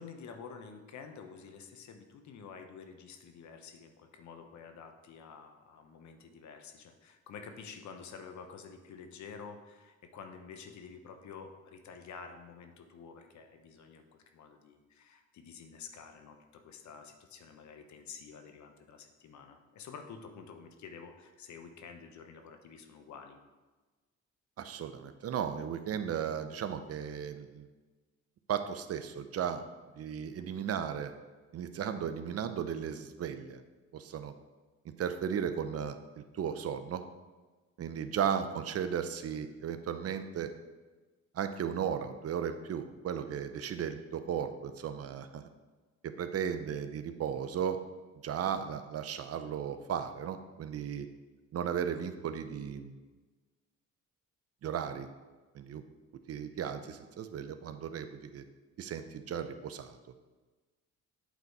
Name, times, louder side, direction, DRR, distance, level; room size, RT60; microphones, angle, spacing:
voice 1, 0.0-14.0 14.3-23.4, left 6 dB, 70° left, 6 dB, 0.9 m, -49 dB
voice 2, 24.6-27.7 28.5-29.6 30.0-31.1 31.5-33.6 33.9-34.3 34.8-37.0 37.8-40.5 41.3-45.4 46.0-47.8 48.2-51.1 51.5-53.0 54.6-55.1 55.5-55.8 56.3-58.4 58.8-60.0, right 8 dB, 55° right, 9 dB, 0.6 m, -35 dB
8.2 x 4.1 x 4.6 m, 1.3 s
cardioid pair, 90°, 30 cm